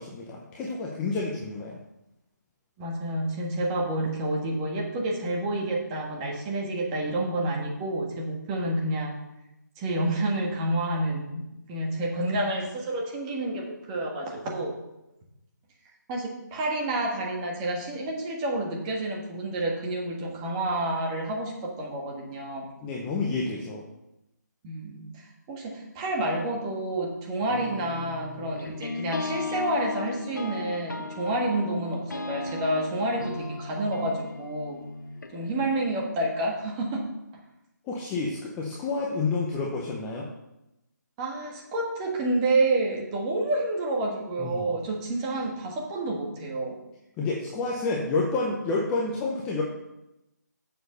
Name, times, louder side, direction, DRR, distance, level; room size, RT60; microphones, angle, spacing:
voice 1, 0.0-1.8 22.8-23.8 37.8-40.3 44.4-44.7 47.2-49.6, left 3 dB, 10° left, -3 dB, 0.7 m, -29 dB
voice 2, 2.8-9.2 9.8-11.4 11.7-14.8 16.1-22.7 24.6-34.8 35.3-37.1 41.2-46.8, right 1 dB, 15° right, -1 dB, 1.6 m, -29 dB
sound 1, 27.5-35.9, left 3 dB, 70° left, 1.1 m, -37 dB
7.2 x 6.3 x 6.6 m, 0.91 s
figure-of-eight pair, 165°, 10 cm